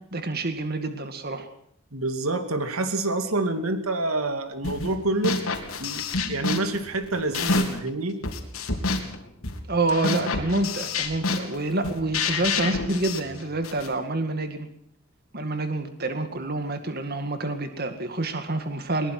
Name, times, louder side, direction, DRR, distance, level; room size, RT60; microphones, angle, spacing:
voice 1, 0.1-1.5 9.7-14.7 15.3-19.1, right 2 dB, 45° right, 7 dB, 2.0 m, -28 dB
voice 2, 1.9-5.4 5.8-8.2, right 2 dB, 90° right, 8 dB, 2.5 m, -27 dB
sound 1, 4.6-4.9 5.2-7.9 8.2-13.9, left 3 dB, 90° left, 3.5 m, -28 dB
21.5 x 21.0 x 6.1 m, 0.69 s
head